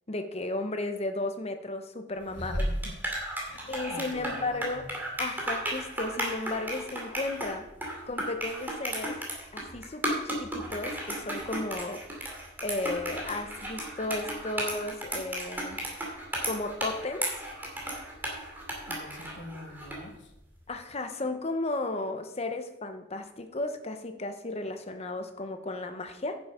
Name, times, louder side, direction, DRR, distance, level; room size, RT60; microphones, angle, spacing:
voice 1, 0.1-2.5 3.7-4.8 5.2-7.7 8.1-9.2 9.5-12.0 12.6-15.8 16.5-17.3 20.7-26.4, left 2 dB, 30° left, 7 dB, 0.9 m, -34 dB
voice 2, 2.3-3.0 3.5-5.0 18.8-20.3, left 1 dB, 60° left, 4 dB, 1.5 m, -44 dB
sound 1, 2.3-20.1, right 1 dB, 10° right, 2.5 m, -34 dB
10.5 x 7.0 x 5.0 m, 0.87 s
head